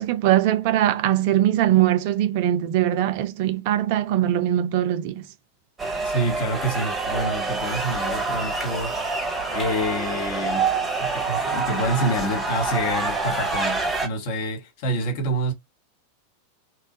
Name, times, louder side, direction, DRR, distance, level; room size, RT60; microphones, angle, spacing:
voice 1, 0.0-5.1, right 12 dB, 50° right, 0.4 m, -21 dB
sound 1, 5.8-14.1, right 3 dB, 15° right, 0.7 m, -26 dB
voice 2, 6.0-9.0 9.5-15.5, right 1 dB, 50° left, 1.0 m, -27 dB
2.8 x 2.1 x 2.6 m
figure-of-eight pair, 90°, 0 cm